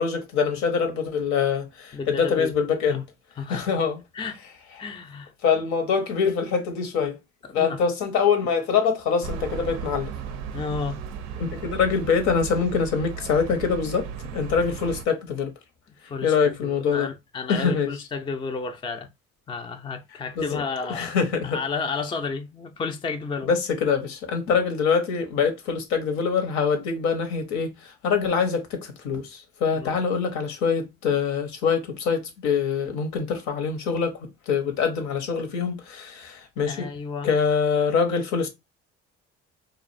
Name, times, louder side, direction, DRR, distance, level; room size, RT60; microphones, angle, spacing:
voice 1, 0.0-3.0 3.5-4.0 5.4-7.2 7.5-10.1 11.4-15.5 16.2-17.1 17.5-17.9 20.4-20.6 20.9-21.6 23.5-36.9 37.2-38.5, left 6 dB, 75° left, 0.8 m, -24 dB
voice 2, 1.9-2.5 2.9-3.0 3.4-3.7 4.1-4.4 4.8-5.3 7.5-7.8 10.5-11.0 16.0-19.1 19.5-21.2 21.4-23.6 29.7-30.0 36.7-37.3, left 4 dB, 15° left, 0.4 m, -32 dB
sound 1, 9.2-15.1, right 7 dB, 80° right, 0.5 m, -35 dB
2.5 x 2.0 x 2.4 m
supercardioid pair, 75°, 29 cm